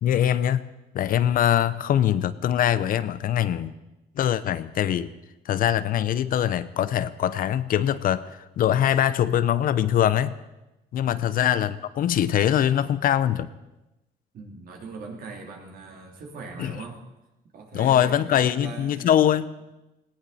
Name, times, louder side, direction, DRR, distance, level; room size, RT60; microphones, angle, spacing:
voice 1, 0.0-0.7 0.9-3.7 4.2-5.1 5.5-10.3 10.9-13.5 16.6-16.7 17.7-19.5, left 10 dB, 55° left, 15 dB, 0.7 m, -23 dB
voice 2, 14.3-17.0 17.5-19.1, right 4 dB, 60° right, 1 dB, 3.3 m, -40 dB
18.5 x 17.0 x 4.2 m, 0.99 s
cardioid pair, 110°, 17 cm